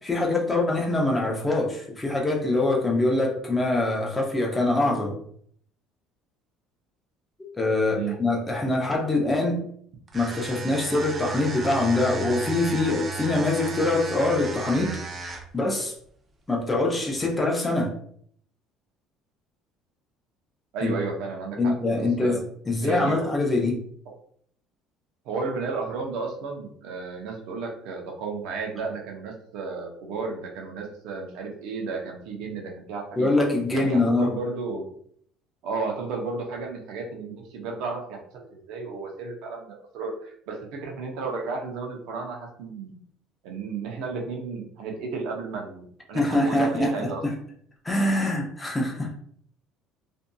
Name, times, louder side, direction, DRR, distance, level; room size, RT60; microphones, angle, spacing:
voice 1, 0.0-5.2 7.6-9.6 10.1-15.9 16.5-17.9 20.8-20.9 21.6-22.4 22.7-23.8 33.2-34.3 46.1-47.3 47.8-49.2, left 2 dB, 15° left, -1 dB, 0.6 m, -24 dB
sound 1, 10.1-15.6, right 5 dB, 30° right, 0.5 m, -34 dB
voice 2, 20.7-22.4 22.8-23.4 25.2-33.3 33.7-34.9 35.6-43.0 43.4-47.2, right 4 dB, 75° right, 1 dB, 0.6 m, -33 dB
2.6 x 2.5 x 2.2 m, 0.64 s
cardioid pair, 125°, 0 cm